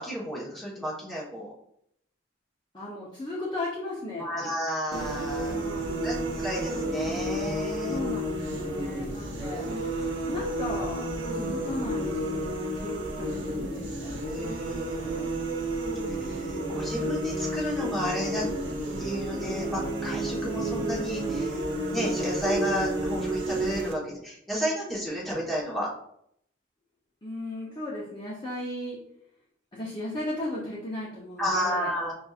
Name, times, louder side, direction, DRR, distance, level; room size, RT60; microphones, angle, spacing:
voice 1, 0.0-1.5 4.2-5.5 6.0-8.0 14.2-15.8 16.1-18.5 19.0-21.6 21.9-25.9 31.4-32.1, equal, ahead, -7 dB, 1.1 m, -32 dB
voice 2, 2.7-4.5 5.5-6.4 7.8-10.0 10.3-14.2 27.2-29.0 29.7-31.9, left 1 dB, 25° left, -7 dB, 0.7 m, -36 dB
sound 1, 4.9-23.9, right 1 dB, 80° right, 0.8 m, -31 dB
6.1 x 2.6 x 2.4 m, 0.73 s
head